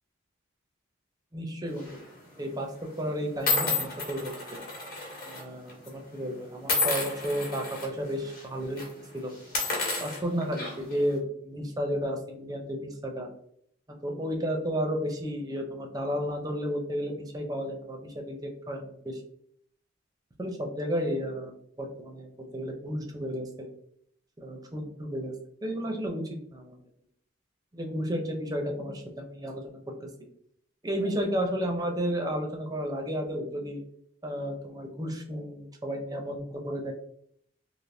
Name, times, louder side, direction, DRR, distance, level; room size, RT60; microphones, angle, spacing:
voice 1, 1.3-2.0 2.4-2.7 3.0-4.3 5.2-9.3 10.0-13.3 14.0-19.2 20.4-21.5 21.8-23.7 24.4-25.3 25.6-26.2 26.5-26.8 27.7-30.1 30.8-33.8 34.2-36.9, equal, 20° right, 2 dB, 0.5 m, -32 dB
sound 1, 1.8-2.1 2.8-2.9 3.5-5.4 5.7-5.9 6.7-7.9 8.3-8.4 8.7-8.9 9.4-11.0, left 3 dB, 45° left, 1.0 m, -30 dB
3.3 x 2.6 x 2.6 m, 0.68 s
head